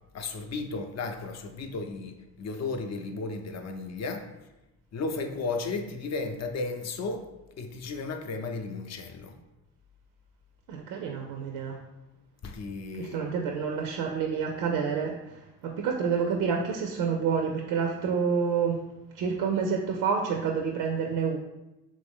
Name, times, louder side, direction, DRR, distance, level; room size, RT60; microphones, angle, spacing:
voice 1, 0.1-4.3 4.9-7.3 7.6-9.4 12.4-13.3, left 3 dB, 45° left, 6 dB, 0.6 m, -34 dB
voice 2, 10.7-11.8 13.0-15.2 15.6-18.8 19.2-21.4, right 6 dB, 80° right, 2 dB, 0.5 m, -28 dB
3.1 x 2.5 x 3.5 m, 0.97 s
supercardioid pair, 60°, 37 cm